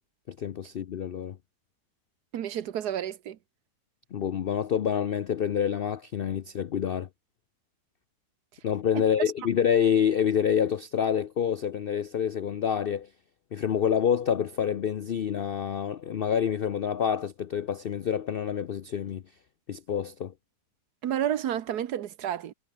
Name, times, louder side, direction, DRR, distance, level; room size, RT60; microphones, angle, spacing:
voice 1, 0.3-1.4 4.1-7.1 8.6-13.1 13.5-19.2 19.7-20.3, left 8 dB, 75° left, 0.5 m, -27 dB
voice 2, 2.3-3.4 8.9-9.0 21.0-22.5, right 10 dB, 75° right, 1.5 m, -30 dB
omnidirectional pair, 1.8 m